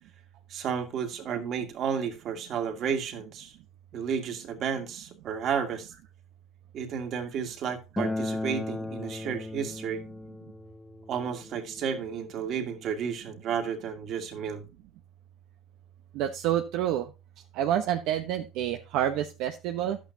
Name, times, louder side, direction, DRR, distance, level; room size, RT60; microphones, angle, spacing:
voice 1, 0.5-3.6 3.9-5.9 6.7-10.0 11.1-14.6, right 7 dB, 45° right, 2.3 m, -32 dB
Acoustic guitar, 8.0-13.2, left 2 dB, 10° left, 0.6 m, -37 dB
voice 2, 16.1-17.1 17.5-20.0, right 11 dB, 65° right, 0.9 m, -28 dB
11.5 x 8.8 x 2.8 m
cardioid pair, 130°, 0 cm